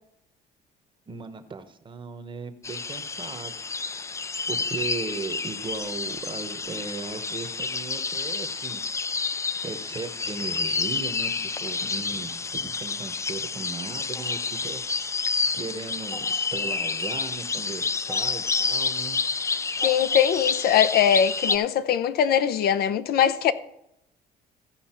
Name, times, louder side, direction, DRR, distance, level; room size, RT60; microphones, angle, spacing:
voice 1, 1.1-3.5 4.5-8.8 9.1-9.2 9.6-15.1 15.5-19.2, right 4 dB, 30° right, 1.0 m, -37 dB
sound 1, 2.6-21.6, left 4 dB, 15° left, 0.3 m, -29 dB
voice 2, 19.8-23.5, left 9 dB, 65° left, 0.6 m, -21 dB
15.0 x 5.3 x 4.4 m
cardioid pair, 110°, 17 cm